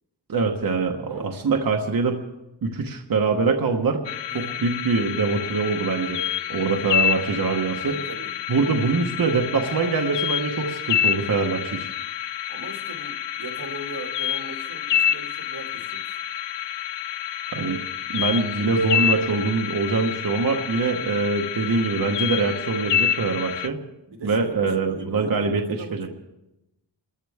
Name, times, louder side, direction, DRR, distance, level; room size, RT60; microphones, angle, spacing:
voice 1, 0.3-2.2 2.6-4.0 4.3-6.2 6.5-7.9 8.5-11.9 17.5-17.8 18.1-23.8 24.2-25.6 25.9-26.1, right 4 dB, 50° right, 2 dB, 1.2 m, -23 dB
sound 1, 4.0-23.7, left 10 dB, 75° left, 0.6 m, -28 dB
voice 2, 4.3-4.6 7.9-8.3 8.7-9.0 12.5-16.2 24.1-26.1, right 2 dB, 85° right, 2 dB, 2.4 m, -38 dB
29.0 x 14.5 x 3.5 m, 0.93 s
wide cardioid pair, 165°, 43 cm